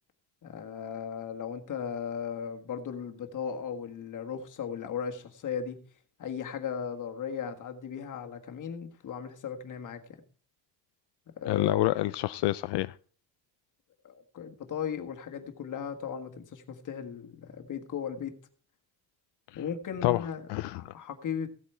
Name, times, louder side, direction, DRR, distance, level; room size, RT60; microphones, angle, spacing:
voice 1, 0.4-5.8 6.2-10.0 11.4-11.9 14.0-18.3 19.6-21.5, left 7 dB, 50° left, 5 dB, 1.6 m, -37 dB
voice 2, 11.5-12.9 19.5-19.6 20.0-20.9, left 17 dB, 80° left, 13 dB, 0.5 m, -28 dB
16.0 x 8.4 x 4.4 m, 0.42 s
cardioid pair, 160°, 40 cm